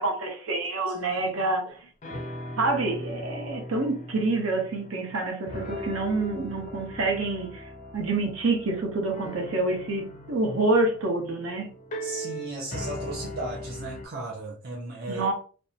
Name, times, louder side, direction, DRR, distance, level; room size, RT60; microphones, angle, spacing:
voice 1, 0.0-1.7 2.6-7.6 7.9-11.7 15.1-15.3, right 2 dB, 75° right, 0.8 m, -27 dB
voice 2, 1.1-1.4 12.0-15.3, right 2 dB, 45° right, 0.5 m, -36 dB
sound 1, 1.7-1.8 2.0-5.2 5.5-14.1, equal, 35° left, 0.4 m, -39 dB
2.6 x 2.1 x 2.6 m
head